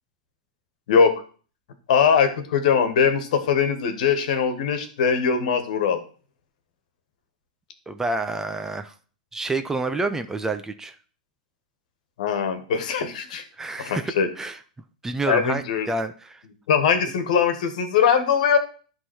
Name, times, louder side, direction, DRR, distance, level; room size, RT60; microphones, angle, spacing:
voice 1, 1.9-6.0 12.2-13.4 13.8-14.3 15.3-15.9 16.7-18.6, left 6 dB, 65° left, 8 dB, 1.6 m, -21 dB
voice 2, 7.9-8.9 9.3-11.0 13.6-14.6 15.0-16.4, right 2 dB, 10° right, 9 dB, 0.7 m, -28 dB
11.0 x 3.8 x 6.3 m, 0.40 s
hypercardioid pair, 110°, 4 cm